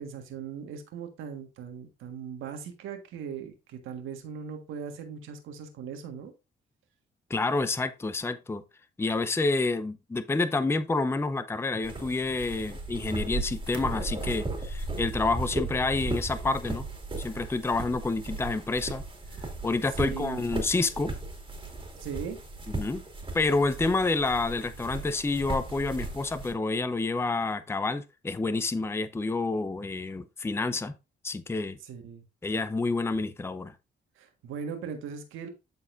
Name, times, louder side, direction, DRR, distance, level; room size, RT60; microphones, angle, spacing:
voice 1, 0.0-6.3 20.0-20.4 22.0-22.4 31.8-32.2 34.2-35.5, right 7 dB, 85° right, 1.6 m, -39 dB
voice 2, 7.3-8.6 9.0-16.9 17.2-19.0 19.6-21.1 22.8-23.0 23.3-30.9 31.2-31.8 32.4-33.7, left 3 dB, 10° left, 0.5 m, -28 dB
sound 1, 11.8-26.5, right 3 dB, 25° right, 2.2 m, -36 dB
12.0 x 4.2 x 2.6 m
cardioid pair, 90°, 20 cm